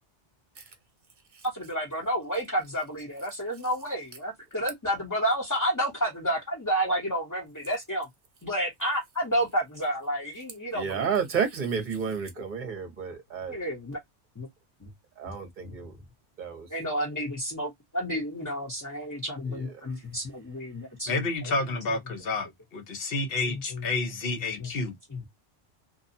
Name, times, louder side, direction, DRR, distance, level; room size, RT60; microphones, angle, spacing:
voice 1, 1.5-8.1 8.4-11.1 13.5-14.0 14.4-14.5 14.8-14.9 15.2-15.3 15.6-15.7 16.7-21.5 21.9-22.0 23.5-23.8 24.2-24.7 25.1-25.2, equal, 15° left, 0.9 m, -30 dB
voice 2, 10.7-13.6 15.2-16.0 16.4-16.7 19.5-19.9, right 6 dB, 45° right, 1.0 m, -31 dB
voice 3, 21.1-24.9, left 3 dB, 55° left, 1.0 m, -30 dB
2.7 x 2.2 x 2.5 m
omnidirectional pair, 1.3 m